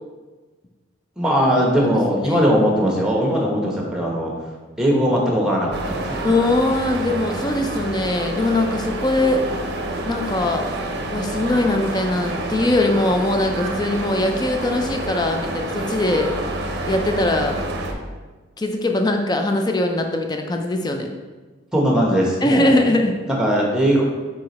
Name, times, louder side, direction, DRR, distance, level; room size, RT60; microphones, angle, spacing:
voice 1, 1.2-4.3 4.8-6.3 21.7-22.7 23.3-24.0, equal, 5° right, -2 dB, 1.0 m, -19 dB
sound 1, 5.7-17.9, right 1 dB, 55° right, 0.7 m, -28 dB
voice 2, 6.2-9.5 10.1-10.7 11.1-16.4 16.9-17.6 18.6-21.1 22.4-23.1, left 2 dB, 20° left, 4 dB, 0.5 m, -21 dB
4.8 x 4.7 x 4.1 m, 1.3 s
head